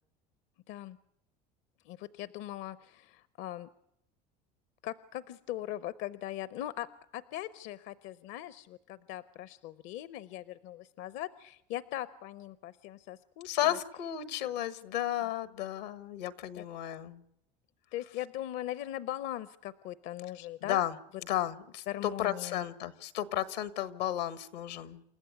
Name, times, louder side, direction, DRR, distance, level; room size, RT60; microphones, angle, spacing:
voice 1, 1.9-3.7 4.8-13.8 16.5-16.6 17.9-20.8 21.9-22.6, left 13 dB, 65° left, 15 dB, 0.8 m, -40 dB
voice 2, 13.4-17.2 20.6-21.0 21.2-25.0, left 12 dB, 85° left, 14 dB, 1.4 m, -33 dB
28.5 x 14.0 x 9.5 m, 0.82 s
supercardioid pair, 85°, 21 cm